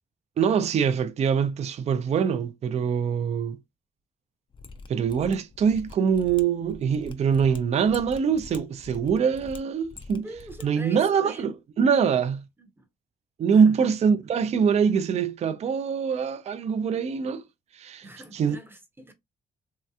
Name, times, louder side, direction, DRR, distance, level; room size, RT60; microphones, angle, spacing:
voice 1, 0.4-3.6 4.9-10.3 10.6-12.4 13.4-17.4 17.7-18.1 18.3-18.6, right 6 dB, 45° right, 0.4 m, -24 dB
Mechanisms, 4.5-10.6 10.9-11.0, left 4 dB, 35° left, 0.4 m, -45 dB
voice 2, 10.2-11.5 12.6-12.9 13.5-13.8 18.0-19.1, right 1 dB, 15° right, 0.7 m, -43 dB
3.1 x 2.8 x 2.3 m
cardioid pair, 115°, 16 cm